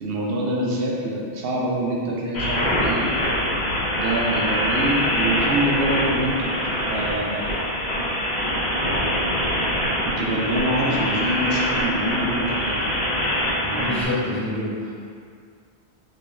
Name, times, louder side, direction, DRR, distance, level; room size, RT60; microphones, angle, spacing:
voice 1, 0.0-3.1 3.9-7.4 10.1-12.8 13.6-13.9, right 1 dB, 70° right, -3 dB, 0.8 m, -25 dB
sound 1, 2.3-14.0, equal, 80° left, 1.3 m, -24 dB
voice 2, 13.8-14.9, left 1 dB, 20° left, -10 dB, 0.7 m, -27 dB
3.7 x 3.6 x 2.6 m, 2.1 s
omnidirectional pair, 1.1 m